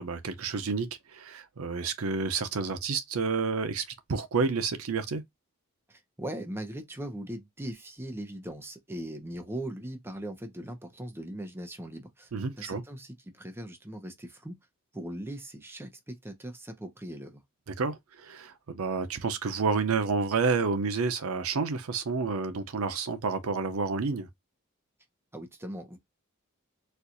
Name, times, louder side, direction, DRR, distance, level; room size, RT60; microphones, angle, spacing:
voice 1, 0.0-5.2 12.3-12.8 17.8-24.3, right 4 dB, 80° right, 0.6 m, -30 dB
voice 2, 5.9-12.3 12.6-14.5 14.9-17.4 25.3-26.0, right 1 dB, 10° right, 0.7 m, -39 dB
4.3 x 2.3 x 2.5 m
head